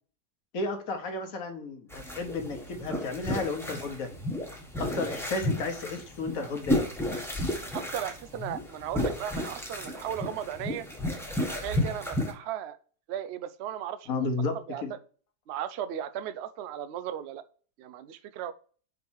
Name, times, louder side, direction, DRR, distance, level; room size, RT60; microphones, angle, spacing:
voice 1, 0.5-4.1 4.8-6.9 14.1-14.9, left 3 dB, 60° left, 6 dB, 1.5 m, -33 dB
sound 1, 1.9-12.3, left 1 dB, ahead, 1.2 m, -32 dB
voice 2, 7.7-10.9 11.4-12.8 13.1-14.1 14.7-14.8 15.5-17.4 17.8-18.5, right 10 dB, 85° right, 12 dB, 0.5 m, -36 dB
5.3 x 4.6 x 4.5 m, 0.42 s
omnidirectional pair, 1.8 m